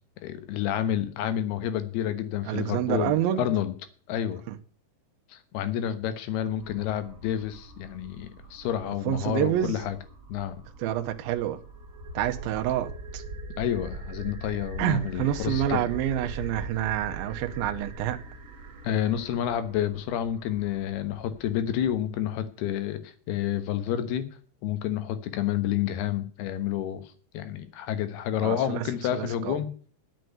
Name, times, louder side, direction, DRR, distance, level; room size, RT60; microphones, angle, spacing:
voice 1, 0.2-3.7 4.1-4.4 5.3-10.0 10.3-10.6 13.6-15.8 18.8-24.3 24.6-27.0 27.3-29.7, left 10 dB, 80° left, 3.2 m, -29 dB
voice 2, 2.5-3.5 4.5-4.6 9.1-9.8 10.8-11.6 12.1-13.2 14.8-18.2 28.4-28.9 29.1-29.6, right 12 dB, 75° right, 2.5 m, -28 dB
sound 1, 6.6-22.0, right 2 dB, 50° right, 2.3 m, -42 dB
10.5 x 7.8 x 9.2 m
omnidirectional pair, 4.6 m